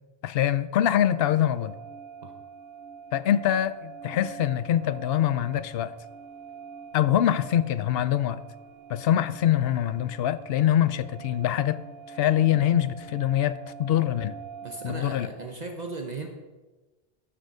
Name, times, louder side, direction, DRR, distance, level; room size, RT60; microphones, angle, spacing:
voice 1, 0.2-1.7 3.1-5.9 6.9-8.4 8.9-11.8 12.1-14.3 14.8-15.3, left 11 dB, 75° left, 15 dB, 0.8 m, -24 dB
sound 1, 0.8-15.0, right 6 dB, 80° right, 0.9 m, -45 dB
voice 2, 14.6-16.3, right 3 dB, 45° right, 3 dB, 1.0 m, -36 dB
13.0 x 6.6 x 4.9 m, 1.2 s
omnidirectional pair, 1.0 m